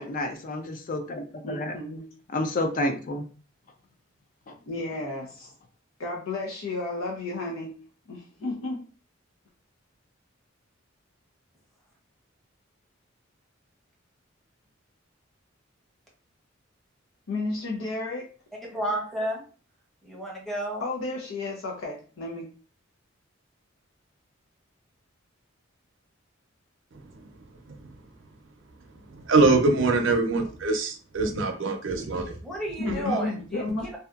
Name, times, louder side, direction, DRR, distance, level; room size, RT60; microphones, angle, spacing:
voice 1, 0.0-1.7 2.3-3.2 4.5-4.6, left 1 dB, 40° left, 5 dB, 0.4 m, -30 dB
voice 2, 1.4-2.1 4.7-5.5 6.0-7.8 8.1-8.8 17.3-18.3 20.8-22.5 32.8-34.0, left 2 dB, 85° left, -1 dB, 0.6 m, -32 dB
voice 3, 18.6-19.4 20.0-20.8 32.4-34.0, right 1 dB, ahead, -3 dB, 0.8 m, -32 dB
voice 4, 26.9-27.2 27.7-27.9 29.1-32.3 32.8-33.3, right 3 dB, 70° right, 4 dB, 0.5 m, -24 dB
2.7 x 2.2 x 2.4 m, 0.38 s
head